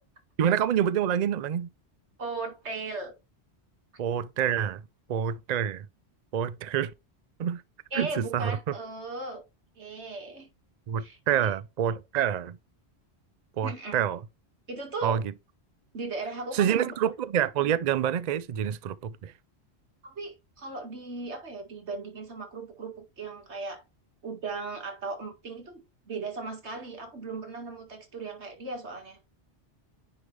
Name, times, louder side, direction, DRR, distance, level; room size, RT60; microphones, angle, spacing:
voice 1, 0.4-1.7 4.0-4.8 5.1-5.9 6.3-6.9 7.4-7.6 7.9-8.8 10.9-12.6 13.6-14.2 15.0-15.3 16.5-19.3, right 9 dB, 55° right, 0.5 m, -27 dB
voice 2, 2.2-3.1 7.9-9.4 9.8-10.5 11.0-11.5 13.6-14.1 14.7-15.2 15.9-17.0 20.0-23.8 24.2-29.2, right 3 dB, 80° right, 2.1 m, -37 dB
9.7 x 3.5 x 3.2 m
omnidirectional pair, 1.1 m